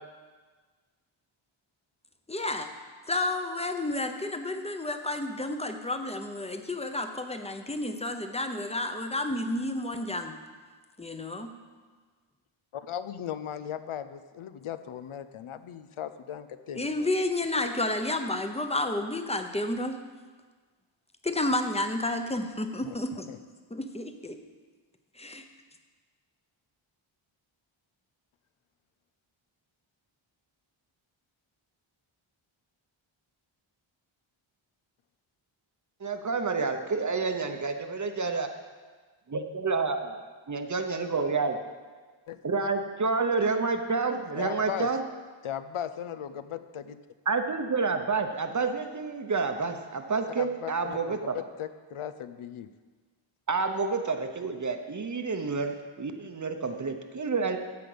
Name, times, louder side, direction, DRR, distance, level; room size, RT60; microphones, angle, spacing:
voice 1, 2.3-2.7 3.1-10.3 11.0-11.5 16.7-20.0 21.2-23.3 23.7-24.3 25.2-25.4, left 2 dB, 15° left, 6 dB, 0.8 m, -31 dB
voice 2, 12.7-17.1 22.8-23.0 23.3-23.4 42.3-42.4 44.3-44.9 45.4-47.0 50.4-52.7, left 10 dB, 80° left, 11 dB, 0.7 m, -37 dB
voice 3, 36.0-38.5 39.3-40.2 40.5-41.6 42.4-45.0 47.3-51.4 53.5-57.6, right 4 dB, 35° right, 6 dB, 0.8 m, -29 dB
14.5 x 5.2 x 7.8 m, 1.4 s
wide cardioid pair, 165°, 49 cm